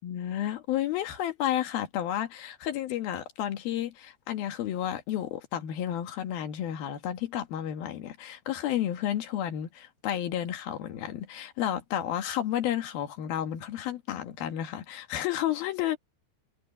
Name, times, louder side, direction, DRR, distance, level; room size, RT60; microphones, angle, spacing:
voice 1, 0.0-16.0, left 11 dB, 70° left, 3.2 m, -31 dB
omnidirectional pair, 4.7 m